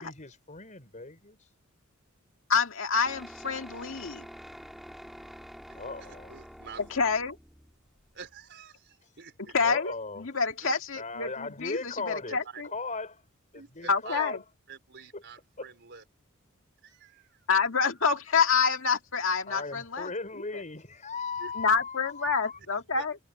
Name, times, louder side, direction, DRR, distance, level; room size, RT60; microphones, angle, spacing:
voice 1, 0.0-1.4 5.7-6.3 9.6-10.2 11.0-13.2 13.5-14.4 15.1-15.2 15.6-15.7 19.5-22.6, left 3 dB, 35° left, 5.7 m, -38 dB
voice 2, 2.5-4.3 6.9-7.4 9.5-12.7 13.9-14.4 17.5-20.1 20.4-20.6 21.6-23.2, left 5 dB, 70° left, 2.0 m, -27 dB
sound 1, 3.0-8.4, equal, ahead, 2.5 m, -47 dB
voice 3, 5.7-6.8 8.1-9.5 10.6-10.8 12.3-12.6 13.5-14.3 14.7-16.0 16.8-17.5 21.4-21.5 22.9-23.0, right 6 dB, 55° right, 4.2 m, -47 dB
head